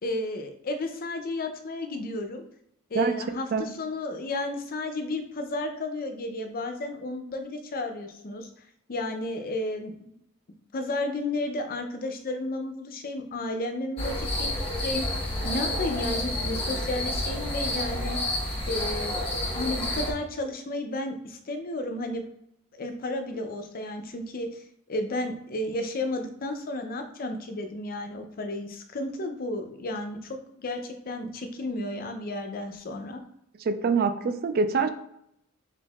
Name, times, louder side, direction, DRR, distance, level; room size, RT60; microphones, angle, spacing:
voice 1, 0.0-2.4 2.9-8.5 8.9-10.2 10.7-14.5 14.8-15.1 15.4-18.2 18.7-22.2 22.7-33.2, left 2 dB, 45° left, 6 dB, 0.5 m, -33 dB
sound 1, 14.0-20.1, left 1 dB, 30° left, 1.1 m, -29 dB
voice 2, 33.7-34.9, right 4 dB, 45° right, 9 dB, 0.4 m, -25 dB
4.4 x 3.9 x 2.3 m, 0.76 s
head